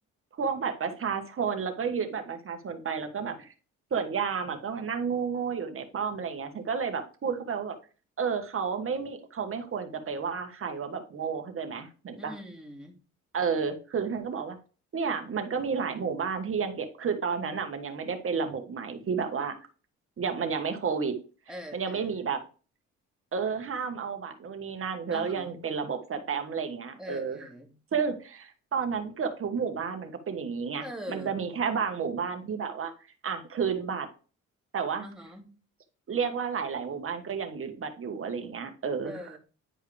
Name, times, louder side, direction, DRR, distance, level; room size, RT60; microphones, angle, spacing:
voice 1, 0.4-3.5 3.9-7.8 8.2-12.3 13.3-14.6 14.9-19.5 20.2-21.1 21.7-22.4 23.3-27.4 27.9-32.9 33.2-34.1 34.7-35.0 36.1-39.4, right 6 dB, 45° right, 6 dB, 1.4 m, -31 dB
voice 2, 12.1-12.9 21.5-22.3 25.1-25.6 27.0-27.7 30.8-31.4 35.0-35.6 39.0-39.4, equal, ahead, 0 dB, 2.4 m, -43 dB
10.0 x 4.6 x 3.5 m, 0.36 s
cardioid pair, 90°, 30 cm